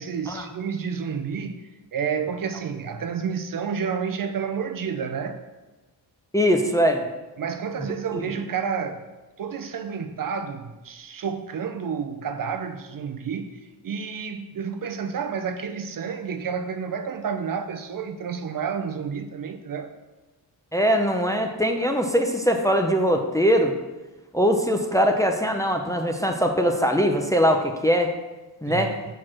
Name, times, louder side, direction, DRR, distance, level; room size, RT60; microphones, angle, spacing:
voice 1, 0.0-1.6 1.9-5.4 7.4-9.0 9.4-13.5 13.8-19.9 28.7-28.9, right 6 dB, 50° right, 0.6 m, -30 dB
voice 2, 6.3-7.0 8.1-8.2 20.7-23.7 24.3-28.1 28.6-28.9, equal, 10° left, 0.5 m, -21 dB
6.4 x 4.6 x 6.2 m
wide cardioid pair, 125°, 43 cm